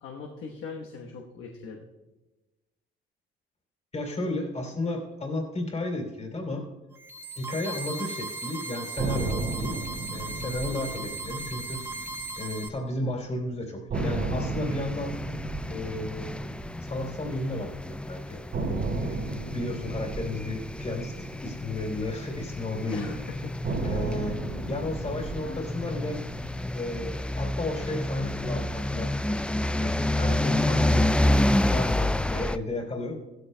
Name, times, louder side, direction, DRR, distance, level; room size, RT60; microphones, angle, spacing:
voice 1, 0.0-1.9 22.9-23.4 23.6-24.0, left 5 dB, 80° left, 0 dB, 1.2 m, -41 dB
voice 2, 3.9-6.7 7.3-9.8 10.1-11.8 12.4-15.2 15.7-16.5 16.8-19.3 19.5-23.1 23.8-24.3 24.7-26.2 26.7-31.1 31.6-33.1, left 2 dB, 35° left, 2 dB, 3.0 m, -33 dB
sound 1, 6.9-12.7, right 2 dB, 15° right, 1.6 m, -37 dB
sound 2, 9.0-13.1 13.3-13.4 13.9-18.0 18.5-22.9 23.6-28.0, right 3 dB, 60° right, 3.8 m, -35 dB
sound 3, 13.9-32.6, left 1 dB, 5° left, 0.3 m, -29 dB
16.0 x 13.0 x 2.2 m, 1.1 s
cardioid pair, 90°, 20 cm